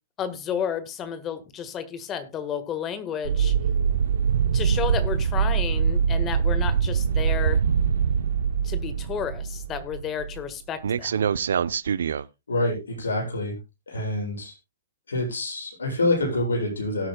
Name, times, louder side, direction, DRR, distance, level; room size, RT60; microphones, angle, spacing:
voice 1, 0.2-3.5 4.5-7.6 8.6-11.3, left 8 dB, 25° left, 1.4 m, -32 dB
sound 1, 3.2-10.5 10.8-12.2, right 7 dB, 75° right, 0.6 m, -24 dB
voice 2, 12.5-13.5 13.9-14.6 15.1-17.1, left 2 dB, 90° left, 7.6 m, -26 dB
18.0 x 8.6 x 2.3 m
hypercardioid pair, 125°, 0 cm